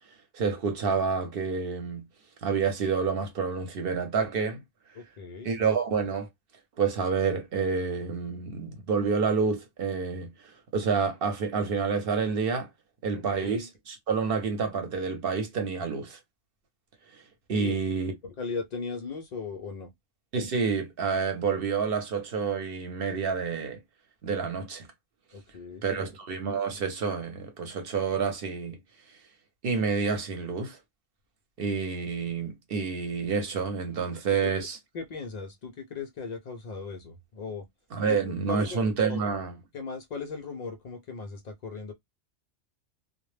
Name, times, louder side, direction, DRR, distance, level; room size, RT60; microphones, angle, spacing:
voice 1, 0.3-2.1 2.4-4.6 5.4-6.3 6.8-12.7 13.0-16.2 17.1-17.2 17.5-18.1 20.3-23.8 24.2-24.9 25.8-28.8 29.6-30.8 31.6-34.8 37.9-39.6, right 5 dB, 55° right, 0.8 m, -28 dB
voice 2, 5.0-5.5 13.1-13.5 17.5-17.8 18.2-19.9 25.3-26.1 34.4-34.5 34.9-37.7 38.1-38.2 38.5-38.8 39.1-39.2 39.7-41.9, left 4 dB, 80° left, 0.3 m, -37 dB
2.1 x 2.1 x 3.2 m
omnidirectional pair, 1.3 m